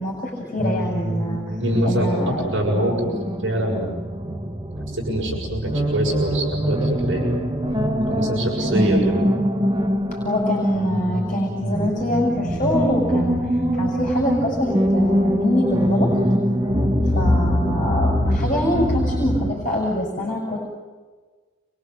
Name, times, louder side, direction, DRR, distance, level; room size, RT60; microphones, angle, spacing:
voice 1, 0.0-1.5 1.8-2.5 10.2-13.4 13.7-16.1 17.1-20.7, equal, 35° left, -2 dB, 6.9 m, -24 dB
sound 1, 0.6-19.5, equal, 20° right, 2.0 m, -23 dB
voice 2, 1.6-3.1 3.4-3.9 4.9-7.2 8.1-9.2, right 1 dB, 65° right, -3 dB, 7.0 m, -24 dB
29.0 x 24.0 x 8.0 m, 1.4 s
head